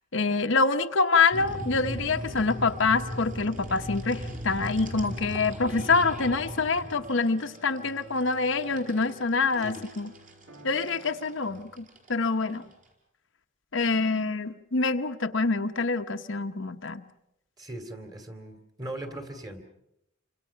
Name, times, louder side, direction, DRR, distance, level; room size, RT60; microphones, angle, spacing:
voice 1, 0.1-10.1 10.6-12.6 13.7-17.0, left 4 dB, 65° left, 6 dB, 1.0 m, -26 dB
sound 1, 1.3-12.9, equal, 40° right, 4.9 m, -39 dB
sound 2, 2.0-11.6, left 1 dB, 75° right, 4.3 m, -50 dB
voice 2, 17.6-19.6, right 1 dB, 20° right, 7 dB, 2.7 m, -39 dB
28.5 x 25.5 x 5.8 m, 0.85 s
head